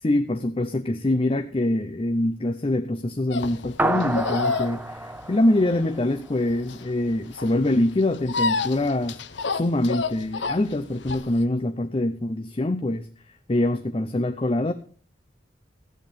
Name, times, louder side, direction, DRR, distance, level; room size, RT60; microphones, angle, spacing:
voice 1, 0.0-9.2 9.5-13.1 13.5-14.7, left 1 dB, 30° left, 8 dB, 0.6 m, -24 dB
sound 1, 3.3-11.4, left 4 dB, 75° left, 0.9 m, -30 dB
sound 2, 3.8-6.5, right 2 dB, 10° right, 0.5 m, -29 dB
14.0 x 8.8 x 5.2 m, 0.41 s
head